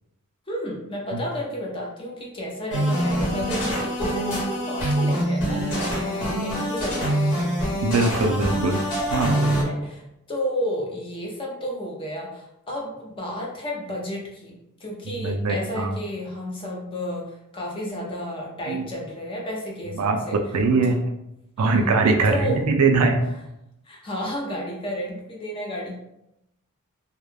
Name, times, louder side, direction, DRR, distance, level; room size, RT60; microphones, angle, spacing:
voice 1, 0.5-7.2 9.3-20.4 20.8-21.0 21.6-21.8 22.2-22.6 23.8-26.0, equal, 25° left, -2 dB, 0.5 m, -32 dB
sound 1, 2.7-9.6, equal, 90° left, 1.0 m, -25 dB
voice 2, 7.8-8.8 9.1-9.4 15.1-15.9 18.7-18.8 19.9-21.0 21.6-23.2, right 3 dB, 80° right, 4 dB, 0.4 m, -21 dB
2.2 x 2.1 x 3.1 m, 0.84 s
head